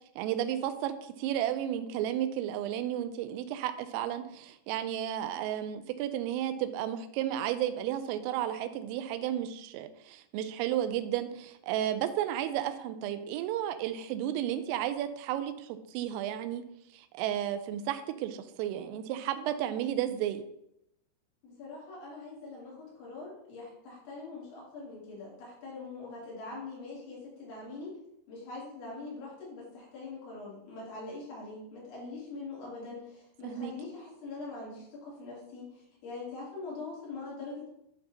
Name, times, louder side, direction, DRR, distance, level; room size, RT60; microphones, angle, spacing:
voice 1, 0.2-16.6 16.9-20.4 33.4-33.7, right 11 dB, 85° right, 9 dB, 3.1 m, -33 dB
voice 2, 21.4-27.9 28.3-37.7, left 3 dB, 65° left, -7 dB, 5.1 m, -43 dB
12.0 x 4.5 x 2.8 m, 0.78 s
omnidirectional pair, 6.0 m